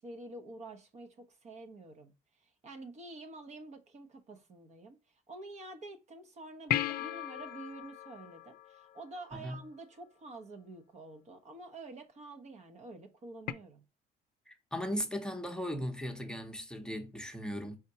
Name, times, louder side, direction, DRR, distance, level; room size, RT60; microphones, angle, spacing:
voice 1, 0.0-13.8, right 2 dB, 40° right, 0.8 m, -48 dB
sound 1, 6.7-9.4 13.5-13.6, left 12 dB, 65° left, 0.5 m, -36 dB
voice 2, 14.5-17.8, equal, 5° left, 0.8 m, -37 dB
4.3 x 3.6 x 2.8 m
cardioid pair, 110°, 17 cm